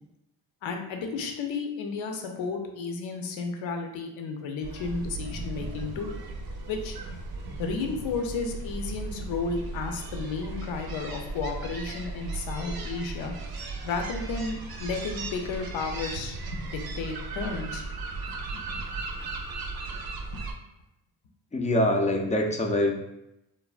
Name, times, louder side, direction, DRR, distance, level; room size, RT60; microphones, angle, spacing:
voice 1, 0.6-6.1 6.7-6.9 7.6-13.3 13.8-16.4 16.7-17.8 20.3-20.4, left 4 dB, 80° left, 3 dB, 0.6 m, -33 dB
sound 1, 4.6-20.5, right 3 dB, 55° right, 0.6 m, -36 dB
voice 2, 21.5-22.9, left 1 dB, 15° left, 3 dB, 0.4 m, -24 dB
3.3 x 2.0 x 2.4 m, 0.88 s
supercardioid pair, 55°, 46 cm